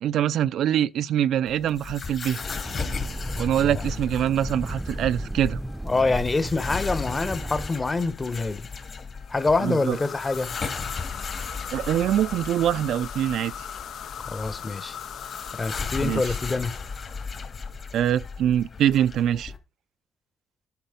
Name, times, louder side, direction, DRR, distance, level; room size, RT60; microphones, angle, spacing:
voice 1, 0.0-2.4 3.4-5.6 9.6-10.0 11.7-13.5 16.0-16.2 17.9-19.5, right 10 dB, 75° right, 0.4 m, -24 dB
sound 1, 1.5-19.6, left 5 dB, 45° left, 2.8 m, -36 dB
sound 2, 2.6-7.7, right 1 dB, 10° right, 0.6 m, -34 dB
voice 2, 5.8-8.7 9.3-10.5 14.3-15.0 15.5-16.7, left 3 dB, 25° left, 1.1 m, -26 dB
sound 3, 9.2-17.8, left 9 dB, 70° left, 0.7 m, -39 dB
10.5 x 5.5 x 5.2 m
cardioid pair, 90°, 0 cm